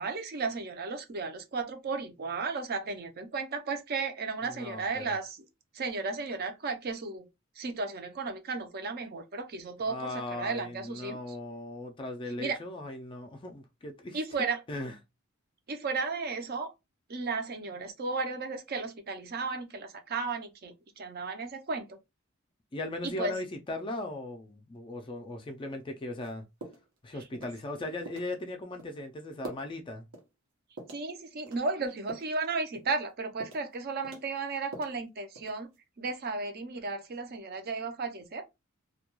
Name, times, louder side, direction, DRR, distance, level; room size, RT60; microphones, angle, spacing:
voice 1, 0.0-5.4 5.7-7.3 7.6-11.2 12.4-12.6 14.1-14.6 15.7-16.7 17.1-21.9 23.0-23.3 30.9-35.7 36.0-38.4, right 4 dB, 50° right, 0.5 m, -34 dB
voice 2, 4.4-5.2 9.8-14.2 14.7-15.0 22.7-26.4 27.0-30.1, left 2 dB, 25° left, 0.3 m, -38 dB
sound 1, 26.2-26.3 26.6-27.0 27.3-27.6 28.0-28.3 28.8-28.9 29.4-29.7 30.1-30.3 30.8-31.1 31.5-32.3 32.7-33.0 33.4-33.7 34.0-35.0 35.3-35.8, right 2 dB, 80° right, 0.9 m, -45 dB
2.2 x 2.2 x 2.9 m
head